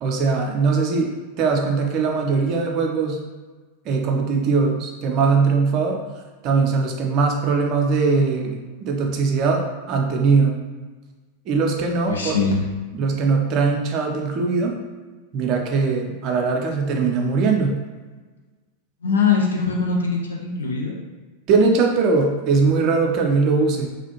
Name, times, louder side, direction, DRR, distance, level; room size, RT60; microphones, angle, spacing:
voice 1, 0.0-3.2 3.9-6.0 6.4-9.6 9.9-10.5 11.5-12.4 12.9-14.7 15.3-17.8 21.5-23.9, right 4 dB, 40° right, 2 dB, 0.5 m, -20 dB
voice 2, 12.0-12.6 19.0-21.0, left 5 dB, 70° left, -1 dB, 0.4 m, -22 dB
3.0 x 2.4 x 2.8 m, 1.3 s
figure-of-eight pair, 90°, 0 cm